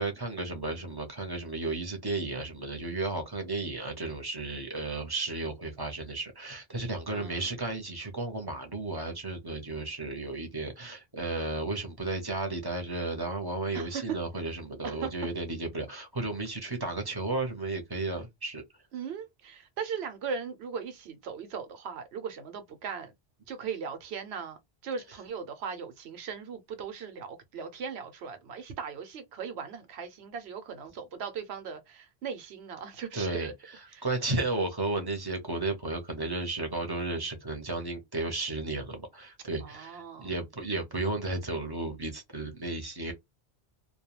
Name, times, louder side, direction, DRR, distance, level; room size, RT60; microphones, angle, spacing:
voice 1, 0.0-18.6 33.1-33.5 34.0-43.1, right 2 dB, 25° right, 0.6 m, -33 dB
voice 2, 7.1-7.5 13.7-14.2 14.8-15.1 18.9-23.1 23.5-33.5 33.9-34.1 39.6-40.3, right 6 dB, 85° right, 0.9 m, -38 dB
2.2 x 2.2 x 2.9 m
omnidirectional pair, 1.0 m